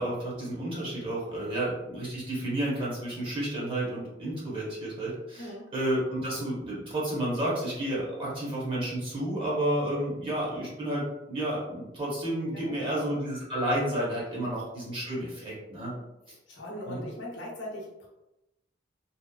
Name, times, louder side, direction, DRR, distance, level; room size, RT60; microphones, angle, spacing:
voice 1, 0.0-5.5 5.7-16.0 16.3-16.4 16.9-17.0, right 1 dB, 25° right, -6 dB, 0.8 m, -31 dB
voice 2, 5.4-5.7 12.5-13.1 14.4-14.6 15.8-16.0 16.5-18.1, left 1 dB, 65° left, -3 dB, 0.8 m, -41 dB
2.8 x 2.0 x 2.2 m, 0.93 s
head